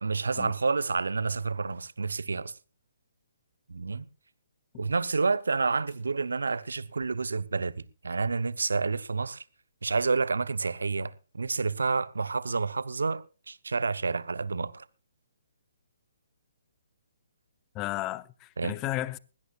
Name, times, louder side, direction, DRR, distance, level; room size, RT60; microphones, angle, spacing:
voice 1, 0.0-2.5 3.7-4.1 4.8-9.4 9.8-14.8 18.6-18.7, right 4 dB, 75° right, 0.8 m, -29 dB
sound 1, 5.4-5.6 5.9-8.0 8.3-8.4 8.6-8.7 8.9-9.5 9.7-10.9 11.3-12.8, left 4 dB, 65° left, 7.6 m, -66 dB
voice 2, 17.7-19.2, left 16 dB, 25° left, 0.7 m, -34 dB
20.5 x 17.0 x 2.4 m
figure-of-eight pair, 135°, 0 cm